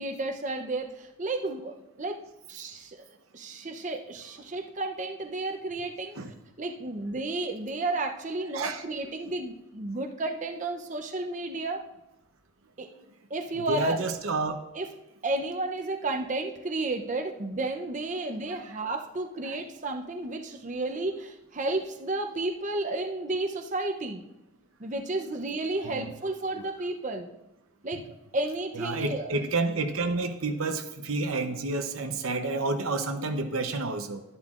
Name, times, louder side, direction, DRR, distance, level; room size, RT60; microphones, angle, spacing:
voice 1, 0.0-2.2 2.5-3.1 3.3-6.2 6.6-11.8 12.8-12.9 13.3-14.0 14.7-14.9 15.2-24.2 24.8-27.3 27.8-28.0 28.3-29.4, right 2 dB, 35° right, 3 dB, 0.7 m, -32 dB
voice 2, 13.5-14.6 18.7-18.8 19.4-19.6 25.9-26.1 28.7-34.2, right 3 dB, 85° right, 5 dB, 0.8 m, -30 dB
11.5 x 11.0 x 2.5 m, 0.90 s
head